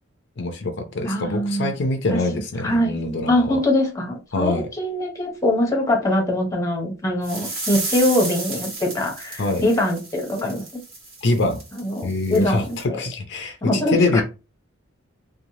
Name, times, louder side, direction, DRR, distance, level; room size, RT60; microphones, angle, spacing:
voice 1, 0.4-3.6 4.3-4.7 9.4-9.6 11.2-11.6 12.0-14.2, left 2 dB, 60° left, 0.5 m, -24 dB
voice 2, 1.0-1.7 2.1-2.2 2.6-3.0 3.3-10.8 11.8-12.6 12.9-13.0 13.6-14.2, left 1 dB, 15° left, 0.7 m, -23 dB
sound 1, 7.2-12.8, right 2 dB, 70° right, 1.3 m, -33 dB
3.0 x 2.1 x 2.7 m
head